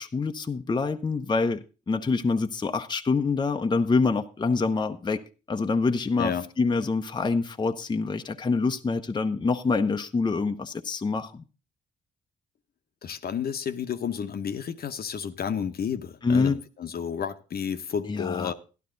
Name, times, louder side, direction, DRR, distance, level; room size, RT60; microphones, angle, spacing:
voice 1, 0.0-5.2 5.5-11.4 16.2-16.6 18.0-18.5, left 4 dB, 25° left, 0.7 m, -26 dB
voice 2, 13.0-18.5, left 7 dB, 55° left, 1.0 m, -31 dB
12.0 x 12.0 x 3.9 m
cardioid pair, 80°, 19 cm